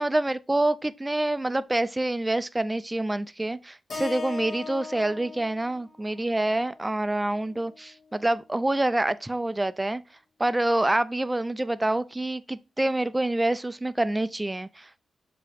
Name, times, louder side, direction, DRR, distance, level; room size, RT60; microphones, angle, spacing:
voice 1, 0.0-10.0 10.4-15.0, right 1 dB, 15° right, 0.4 m, -27 dB
Keyboard (musical), 3.9-8.1, left 4 dB, 55° left, 1.6 m, -40 dB
7.2 x 2.9 x 5.0 m
wide cardioid pair, 130°, 0 cm